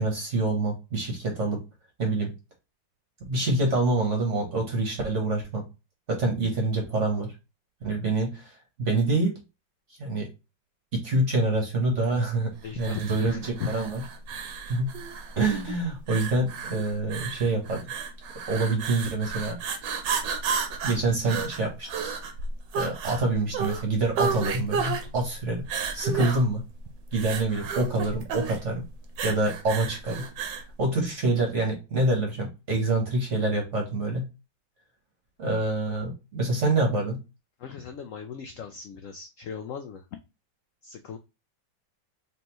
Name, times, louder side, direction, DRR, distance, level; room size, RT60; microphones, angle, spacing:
voice 1, 0.0-1.6 2.0-2.3 3.2-5.6 6.1-7.3 7.8-9.3 10.0-10.3 10.9-14.0 14.7-14.9 15.4-17.9 18.5-19.6 20.8-21.9 22.7-25.6 25.9-26.6 27.1-28.9 29.2-30.2 30.8-34.3 35.4-37.2, right 2 dB, 45° right, 1 dB, 1.3 m, -26 dB
voice 2, 12.6-13.7 37.6-40.2 40.8-41.2, left 8 dB, 85° left, 6 dB, 0.7 m, -38 dB
sound 1, 12.8-30.7, right 5 dB, 75° right, 1.4 m, -33 dB
4.1 x 3.4 x 3.0 m, 0.27 s
omnidirectional pair, 2.0 m